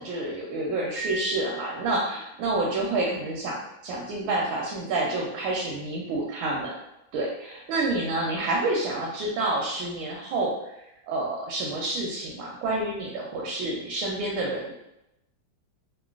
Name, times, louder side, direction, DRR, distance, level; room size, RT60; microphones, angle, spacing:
voice 1, 0.0-3.6 3.8-6.7 7.1-14.7, right 2 dB, 80° right, -3 dB, 1.3 m, -28 dB
Piano, 1.0-2.4, right 1 dB, 50° right, 0.4 m, -38 dB
3.7 x 2.0 x 2.3 m, 0.86 s
omnidirectional pair, 2.1 m